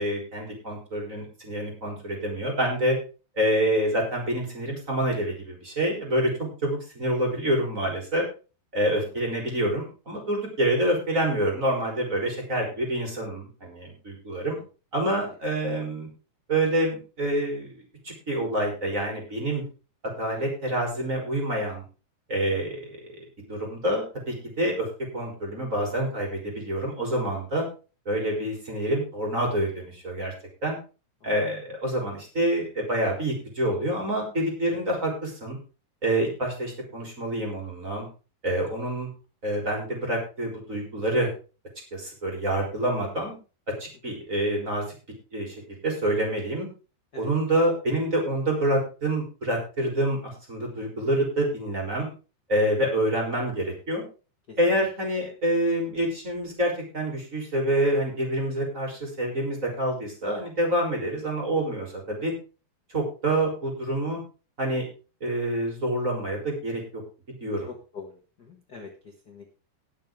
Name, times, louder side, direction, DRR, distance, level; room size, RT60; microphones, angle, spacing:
voice 1, 0.0-3.0 3.4-8.2 8.7-14.6 14.9-16.1 16.5-19.6 20.0-21.8 22.3-24.9 25.1-27.6 28.1-30.3 30.6-30.8 31.2-35.6 36.0-38.1 38.4-39.1 39.4-41.3 41.9-43.3 43.8-44.8 45.3-46.7 47.2-52.1 52.5-54.0 54.6-62.3 62.9-64.2 64.6-64.9 65.2-67.0 67.3-67.7, right 1 dB, 20° right, 0 dB, 4.0 m, -27 dB
voice 2, 67.7-69.5, left 4 dB, 55° left, 1 dB, 1.1 m, -44 dB
19.5 x 6.8 x 3.7 m, 0.34 s
omnidirectional pair, 4.5 m